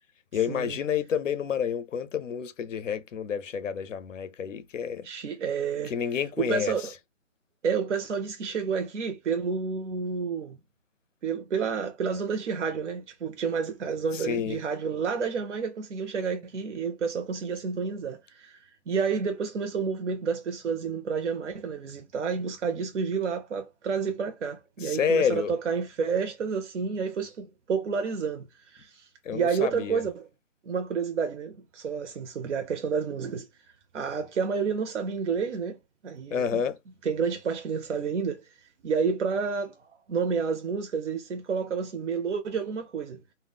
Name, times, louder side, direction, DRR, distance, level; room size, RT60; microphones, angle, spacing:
voice 1, 0.3-5.1 5.9-6.9 14.1-14.6 24.8-25.5 29.2-30.0 36.3-36.8, left 7 dB, 80° left, 0.5 m, -29 dB
voice 2, 5.0-5.9 6.4-6.8 7.6-10.6 11.2-30.2 30.7-33.5 33.9-36.6 37.0-43.2, right 5 dB, 70° right, 0.5 m, -30 dB
2.1 x 2.0 x 3.3 m
hypercardioid pair, 175°, 38 cm